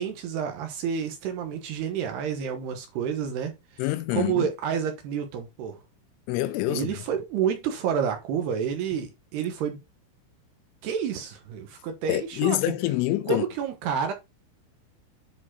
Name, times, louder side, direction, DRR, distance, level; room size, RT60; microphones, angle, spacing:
voice 1, 0.0-3.5 4.1-5.8 6.7-9.8 10.8-12.6 13.3-14.1, right 8 dB, 70° right, 2.8 m, -29 dB
voice 2, 3.8-4.5 6.3-7.0 12.1-13.5, left 16 dB, 80° left, 3.1 m, -26 dB
10.0 x 4.4 x 4.2 m
omnidirectional pair, 5.6 m